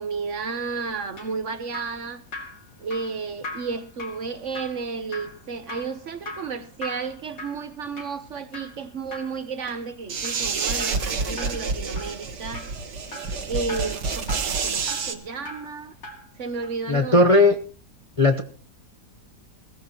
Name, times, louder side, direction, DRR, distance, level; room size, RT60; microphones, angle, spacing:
voice 1, 0.0-2.2 2.8-12.7 13.5-15.9 16.4-17.4, right 5 dB, 55° right, 1.1 m, -32 dB
Drip, 0.9-16.3 16.6-16.8, left 2 dB, 55° left, 2.8 m, -41 dB
sound 1, 10.1-15.1, right 4 dB, 80° right, 2.0 m, -28 dB
voice 2, 16.9-17.5 18.2-18.4, left 2 dB, 35° left, 0.5 m, -16 dB
21.5 x 15.5 x 3.0 m
omnidirectional pair, 1.8 m